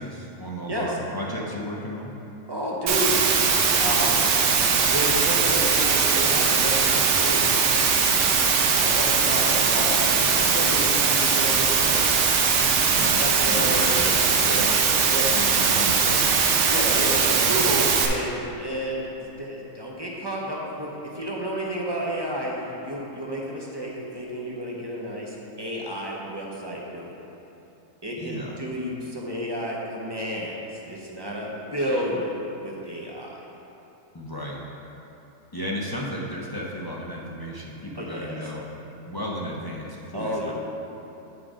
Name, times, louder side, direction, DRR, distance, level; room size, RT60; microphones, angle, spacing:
voice 1, 0.0-2.1 12.8-13.2 13.5-14.0 15.3-16.7 28.2-28.6 34.1-34.6 35.5-38.6 39.1-40.3, equal, 30° left, -4 dB, 0.5 m, -33 dB
voice 2, 2.5-3.2 3.8-4.3 4.9-7.7 8.5-12.2 13.2-15.4 15.8-15.9 16.7-27.1 28.0-32.4 32.6-33.4 38.0-38.5 40.1-40.5, equal, 25° right, -3 dB, 0.7 m, -31 dB
Water, 2.9-18.1, right 5 dB, 70° right, 1.0 m, -21 dB
9.7 x 3.8 x 4.9 m, 3.0 s
omnidirectional pair, 1.4 m